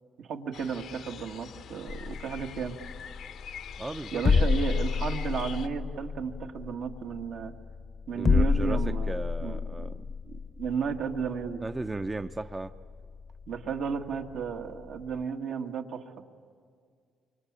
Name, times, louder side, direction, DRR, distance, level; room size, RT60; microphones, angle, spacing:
voice 1, 0.2-2.8 4.1-7.5 8.1-9.9 10.2-11.6 13.5-16.0, right 6 dB, 75° right, 2 dB, 1.7 m, -33 dB
sound 1, 0.5-5.7, left 8 dB, 75° left, 1.0 m, -44 dB
sound 2, 1.9-15.2, left 5 dB, 45° left, 0.8 m, -31 dB
voice 2, 3.8-4.4 8.1-10.0 11.6-12.7, right 2 dB, 20° right, 9 dB, 0.6 m, -36 dB
25.5 x 23.0 x 8.7 m, 2.1 s
cardioid pair, 90°, 0 cm